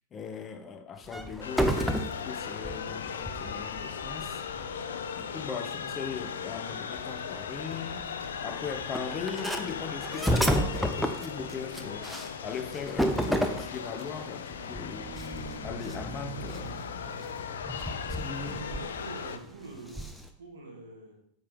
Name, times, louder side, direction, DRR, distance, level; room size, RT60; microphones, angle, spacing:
voice 1, 0.1-4.4 5.2-15.1 15.6-16.9 18.1-18.6, left 6 dB, 25° left, 0.8 m, -39 dB
sound 1, 1.0-5.3 6.2-6.3 6.5-6.6 7.0-14.2 14.5-20.3, equal, ahead, 0.8 m, -32 dB
sound 2, 1.4-19.4, left 7 dB, 65° left, 0.6 m, -38 dB
sound 3, 14.2-18.5, right 2 dB, 45° right, 3.1 m, -44 dB
voice 2, 18.4-20.1 20.4-21.1, right 2 dB, 65° right, 2.6 m, -44 dB
8.7 x 5.5 x 5.2 m
figure-of-eight pair, 90°, 0 cm